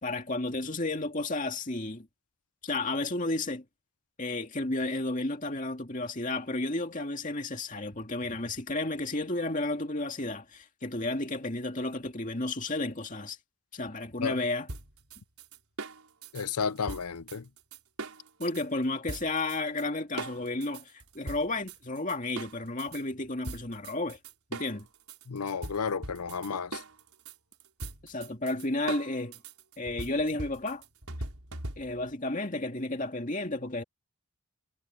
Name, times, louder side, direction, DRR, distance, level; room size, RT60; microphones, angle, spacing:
voice 1, 0.0-2.1 2.6-3.6 4.2-13.4 13.7-14.7 18.4-24.2 24.5-24.9 28.0-29.4 29.8-30.8 31.8-33.8, left 2 dB, 35° left, 2.4 m, -32 dB
sound 1, 14.7-18.6 19.1-19.8 20.2-23.0 23.4-32.1, right 2 dB, 75° right, 5.1 m, -41 dB
voice 2, 16.3-17.5 25.3-26.8, left 6 dB, 90° left, 0.7 m, -32 dB
head